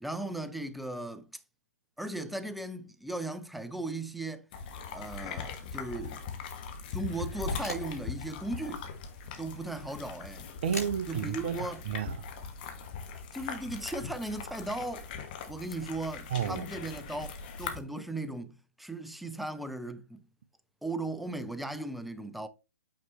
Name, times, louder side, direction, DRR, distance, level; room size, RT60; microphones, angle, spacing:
voice 1, 0.0-1.3 2.0-4.5 4.9-6.2 6.9-8.9 9.4-10.5 11.1-11.8 13.3-15.1 15.5-20.2 20.8-22.5, right 2 dB, ahead, 0.4 m, -37 dB
sound 1, 4.5-17.8, left 5 dB, 35° left, 1.3 m, -40 dB
sound 2, 7.4-13.8, left 1 dB, 80° left, 4.2 m, -47 dB
voice 2, 10.6-11.6 11.9-12.3 16.3-16.7, right 8 dB, 40° right, 0.7 m, -31 dB
8.6 x 4.4 x 3.1 m
figure-of-eight pair, 125°, 8 cm